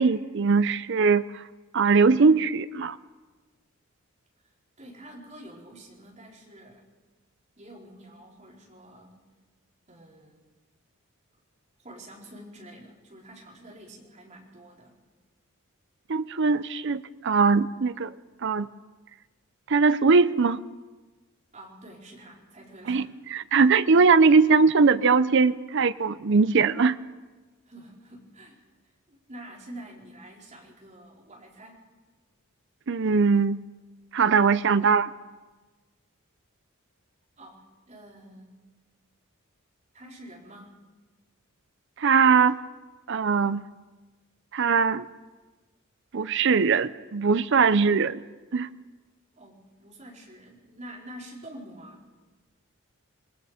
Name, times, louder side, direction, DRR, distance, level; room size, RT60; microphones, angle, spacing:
voice 1, 0.0-1.4 1.7-3.0 16.1-18.1 18.4-18.7 19.7-20.6 22.9-23.1 23.3-27.0 32.9-33.6 34.1-35.1 42.0-42.6 43.1-43.7 44.5-45.1 46.1-48.2 48.5-48.7, right 5 dB, 55° right, 14 dB, 0.6 m, -21 dB
voice 2, 4.8-6.8 7.6-9.2 9.9-10.5 11.8-15.0 21.5-23.0 27.7-28.6 29.1-31.9 37.4-38.6 39.9-40.8 49.3-52.0, right 1 dB, 35° right, -3 dB, 4.5 m, -47 dB
27.0 x 20.5 x 5.1 m, 1.3 s
head